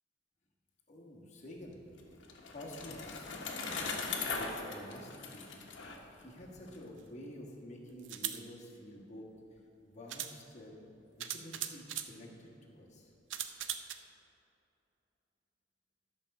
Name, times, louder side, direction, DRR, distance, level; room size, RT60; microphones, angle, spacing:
voice 1, 0.9-1.8 2.5-3.3 3.9-5.7 6.2-9.6 9.9-10.9 11.2-13.1, left 1 dB, 40° left, -2 dB, 1.5 m, -49 dB
Bicycle, 1.7-6.8, left 4 dB, 85° left, 1.2 m, -40 dB
sound 1, 7.0-7.1 8.0-8.4 9.6-9.7 10.1-10.4 11.2-12.1 13.3-13.9, right 10 dB, 85° right, 0.6 m, -39 dB
12.0 x 5.4 x 6.5 m, 2.9 s
head